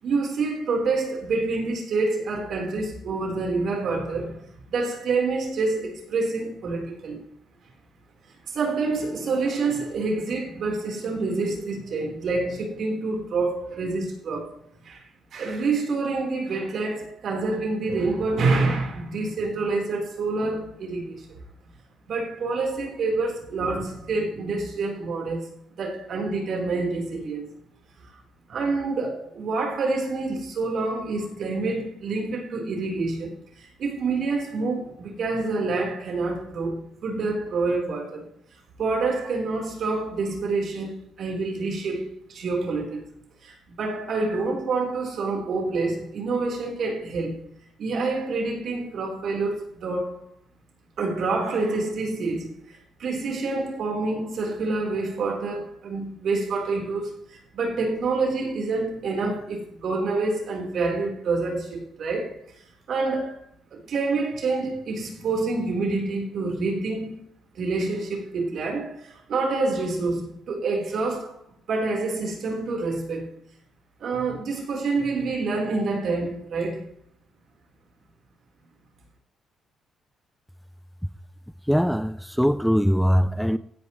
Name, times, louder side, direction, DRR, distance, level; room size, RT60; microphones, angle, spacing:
voice 1, 0.0-7.3 8.4-14.6 14.8-21.4 22.0-27.5 28.1-28.2 28.5-38.3 38.8-43.1 43.4-47.5 47.8-50.3 51.0-62.6 62.9-63.4 63.7-67.2 67.5-71.4 71.7-73.4 74.0-76.8, right 3 dB, 60° right, 4.2 m, -27 dB
voice 2, 81.7-83.6, equal, ahead, 0.5 m, -21 dB
16.0 x 10.5 x 3.2 m
cardioid pair, 90°, 0 cm